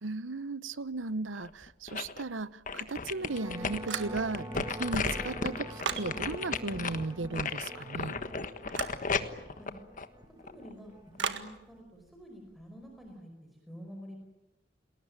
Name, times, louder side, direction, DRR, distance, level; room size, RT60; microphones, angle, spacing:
voice 1, 0.0-8.2, right 3 dB, 90° right, 17 dB, 0.9 m, -36 dB
sound 1, 1.4-2.2 2.7-10.7 11.1-11.2, left 4 dB, 45° left, 1.4 m, -35 dB
sound 2, 3.1-11.8, right 1 dB, 20° right, 1.3 m, -45 dB
sound 3, 3.9-4.4 4.8-6.1 8.7-9.0 11.2-11.5, right 5 dB, 70° right, 1.8 m, -35 dB
voice 2, 10.4-14.2, equal, ahead, 1 dB, 5.0 m, -48 dB
30.0 x 20.5 x 8.9 m, 0.94 s
head